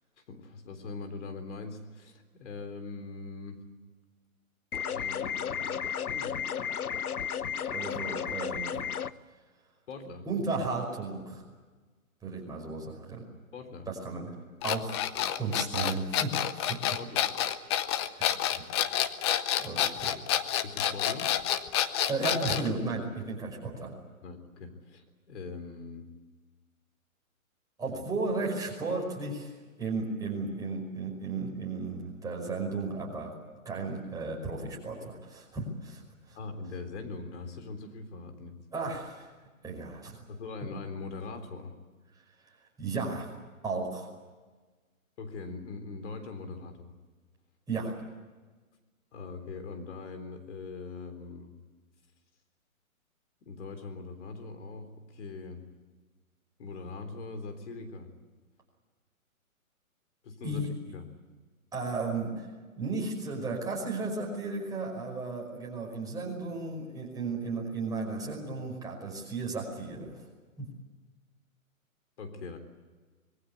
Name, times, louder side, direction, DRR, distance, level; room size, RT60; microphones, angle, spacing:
voice 1, 0.3-3.6 4.8-5.8 6.1-6.4 9.9-10.3 13.5-13.9 17.0-17.2 20.6-21.3 24.2-26.1 36.3-38.6 40.3-41.7 45.2-46.9 49.1-51.5 53.4-55.7 56.6-58.1 60.2-61.1 72.2-72.6, left 3 dB, 55° left, 7 dB, 3.9 m, -41 dB
sound 1, 4.7-9.1, left 8 dB, 85° left, 1.1 m, -33 dB
voice 2, 7.7-8.8 10.2-11.4 12.2-13.2 13.9-14.3 14.6-15.0 15.4-17.0 18.1-18.6 19.6-20.2 22.1-23.9 27.8-29.5 29.8-33.3 33.6-36.0 36.3-36.4 38.7-39.3 39.6-40.2 42.8-43.3 43.6-44.1 47.7-48.0 60.4-60.7 61.7-62.5 62.8-70.2 70.6-70.7, right 3 dB, 10° right, -1 dB, 5.3 m, -34 dB
sound 2, 14.6-22.7, left 11 dB, 20° left, 0.7 m, -28 dB
25.5 x 21.5 x 8.3 m, 1.3 s
hypercardioid pair, 145°, 43 cm